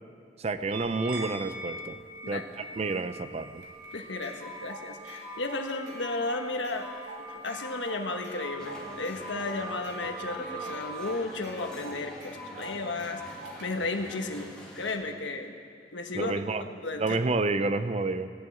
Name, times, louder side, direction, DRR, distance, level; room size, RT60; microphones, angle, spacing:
voice 1, 0.4-2.0 2.3-3.6 16.1-16.6 17.0-18.3, right 3 dB, 35° right, 12 dB, 0.5 m, -29 dB
sound 1, 0.7-11.1, right 1 dB, 55° right, 1.9 m, -43 dB
sound 2, 3.6-13.6, equal, 70° right, 2.7 m, -45 dB
voice 2, 3.9-6.9 7.3-15.6 15.9-16.3 16.6-17.2, left 3 dB, 85° left, 5 dB, 1.3 m, -34 dB
sound 3, 8.6-14.9, equal, 5° left, 1.8 m, -46 dB
17.0 x 7.4 x 8.5 m, 2.4 s
head